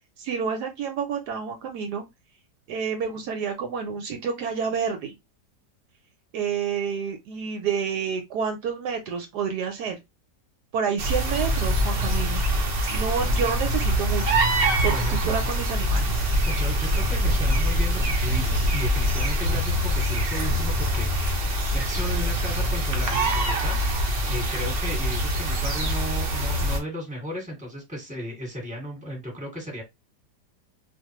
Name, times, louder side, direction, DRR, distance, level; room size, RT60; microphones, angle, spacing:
voice 1, 0.2-2.0 2.7-5.1 6.3-10.0 10.7-12.4 12.9-14.3 14.8-16.3, right 6 dB, 75° right, 1.2 m, -29 dB
sound 1, 11.0-26.8, equal, 55° right, 0.6 m, -24 dB
voice 2, 14.8-15.3 16.4-29.8, equal, 5° right, 1.3 m, -35 dB
2.5 x 2.5 x 2.9 m
omnidirectional pair, 1.8 m